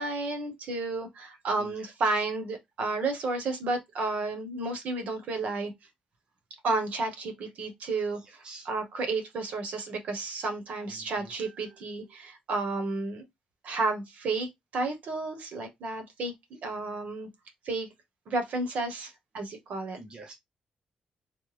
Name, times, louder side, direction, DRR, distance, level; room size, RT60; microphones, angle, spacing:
voice 1, 0.0-5.7 6.6-13.2 13.6-14.5 14.7-16.3 16.6-17.3 17.6-17.9 18.3-20.0, right 3 dB, 70° right, 1.2 m, -32 dB
voice 2, 1.6-1.9 8.2-8.7 10.9-11.3 20.0-20.3, right 2 dB, 40° right, 0.8 m, -48 dB
3.3 x 2.2 x 3.3 m
cardioid pair, 120°, 3 cm